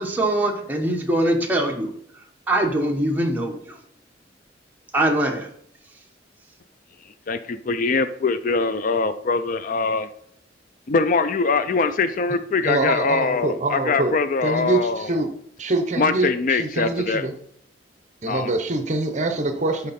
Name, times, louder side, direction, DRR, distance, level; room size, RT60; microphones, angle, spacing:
voice 1, 0.0-1.9 2.5-3.8 4.9-5.5, right 1 dB, 10° right, 0 dB, 1.2 m, -22 dB
voice 2, 7.3-10.1 10.9-15.1 16.0-17.2 18.3-18.5, left 4 dB, 45° left, 11 dB, 0.4 m, -22 dB
voice 3, 12.6-14.2 14.4-15.3 15.6-17.3 18.2-19.9, right 2 dB, 40° right, 7 dB, 0.8 m, -24 dB
11.5 x 4.1 x 4.2 m, 0.67 s
head